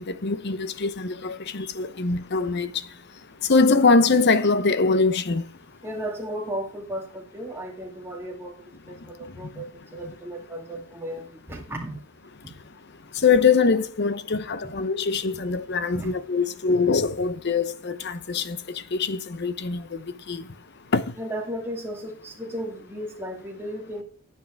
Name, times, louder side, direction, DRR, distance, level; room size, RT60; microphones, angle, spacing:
voice 1, 0.1-2.7 3.5-5.4 13.2-18.6 18.9-19.8 20.3-20.4 20.9-21.0, left 4 dB, 55° left, 0.8 m, -22 dB
voice 2, 5.8-12.0 12.4-12.5 15.9-16.1 21.2-24.0, equal, 10° right, 2.4 m, -35 dB
9.5 x 8.7 x 4.6 m
head